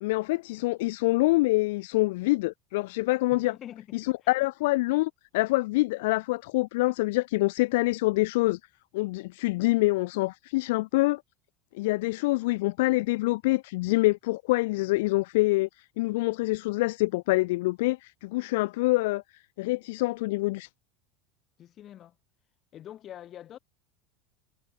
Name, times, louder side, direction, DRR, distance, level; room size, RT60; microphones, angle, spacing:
voice 1, 0.0-3.5 3.9-8.6 8.9-11.2 11.7-20.7, left 21 dB, 65° left, 0.4 m, -26 dB
voice 2, 3.3-4.3 21.6-22.2 22.7-23.6, left 11 dB, 40° left, 5.5 m, -45 dB
figure-of-eight pair, 75°, 0 cm